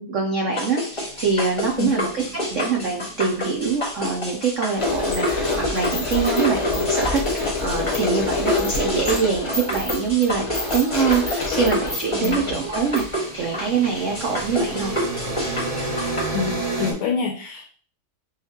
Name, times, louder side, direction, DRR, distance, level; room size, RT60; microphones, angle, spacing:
voice 1, 0.0-14.9, right 5 dB, 75° right, 0 dB, 0.7 m, -24 dB
sound 1, 0.6-16.3, equal, 15° left, 1.4 m, -29 dB
sound 2, 0.9-5.2 6.8-16.9, right 2 dB, 35° right, 0.6 m, -34 dB
sound 3, 4.8-13.3, left 3 dB, 55° left, 0.3 m, -26 dB
voice 2, 12.2-12.6 16.3-17.7, left 6 dB, 85° left, -1 dB, 1.6 m, -27 dB
6.3 x 2.4 x 2.9 m, 0.40 s
omnidirectional pair, 2.2 m